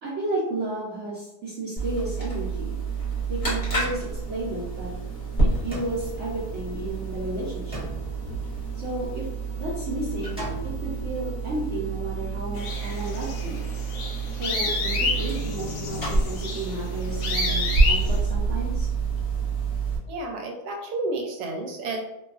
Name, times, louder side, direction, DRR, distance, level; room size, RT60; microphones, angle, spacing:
voice 1, 0.0-2.7 3.3-4.9 5.4-7.8 8.8-9.2 9.5-10.5 10.8-13.6 14.4-18.9, right 1 dB, 60° right, -8 dB, 0.9 m, -32 dB
sound 1, 1.8-20.0, right 4 dB, 35° left, 0.9 m, -28 dB
sound 2, 3.8-5.0 5.7-7.1 7.7-9.1 10.4-10.9, equal, 5° right, 0.6 m, -40 dB
sound 3, 12.6-18.2, left 3 dB, 75° left, 1.0 m, -30 dB
voice 2, 20.1-22.0, right 2 dB, 85° right, 2 dB, 1.1 m, -31 dB
2.6 x 2.3 x 2.3 m, 0.89 s
omnidirectional pair, 1.6 m